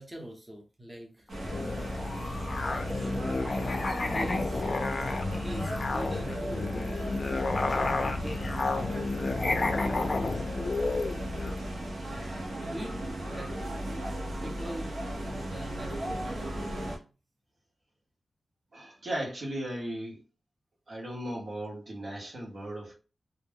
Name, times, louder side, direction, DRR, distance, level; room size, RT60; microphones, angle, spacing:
voice 1, 0.0-1.3 2.6-4.7 5.4-6.7 7.7-10.3 12.1-13.6 14.4-16.9, right 1 dB, 15° right, 0.8 m, -43 dB
sound 1, 1.3-17.0, right 1 dB, 80° right, 0.9 m, -36 dB
Musical instrument, 1.4-11.6, left 3 dB, 40° left, 0.4 m, -31 dB
voice 2, 18.7-20.2 20.9-23.0, right 1 dB, 65° right, 1.1 m, -36 dB
2.4 x 2.1 x 3.4 m
wide cardioid pair, 130°, 0 cm